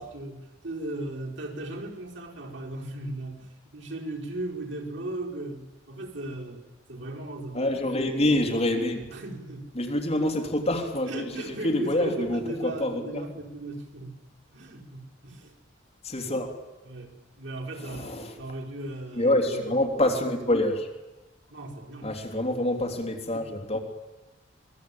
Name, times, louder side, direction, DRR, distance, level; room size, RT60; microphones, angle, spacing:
voice 1, 0.0-7.7 9.1-9.8 11.1-14.2 14.5-15.5 16.9-19.8 21.5-22.1, right 2 dB, 70° right, -1 dB, 5.2 m, -37 dB
voice 2, 7.5-9.1 9.7-13.0 16.0-16.5 17.8-18.3 19.1-20.9 22.0-23.8, left 1 dB, 35° left, 4 dB, 3.4 m, -26 dB
26.0 x 21.0 x 8.8 m, 1.1 s
head